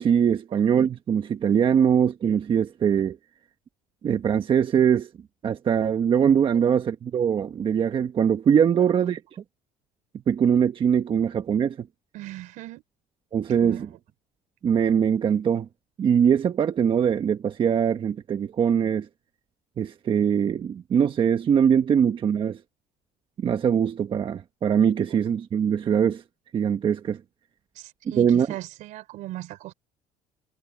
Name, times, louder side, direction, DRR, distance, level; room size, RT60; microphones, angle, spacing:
voice 1, 0.0-3.2 4.0-5.1 5.4-9.2 10.3-11.9 13.3-13.9 14.6-15.7 16.0-19.1 19.8-22.6 23.4-26.2 26.5-27.2 28.2-28.5, right 8 dB, 40° right, 1.3 m, -22 dB
voice 2, 12.1-12.8 13.5-13.9 27.7-29.7, right 16 dB, 70° right, 4.1 m, -39 dB
cardioid pair, 115°, 14 cm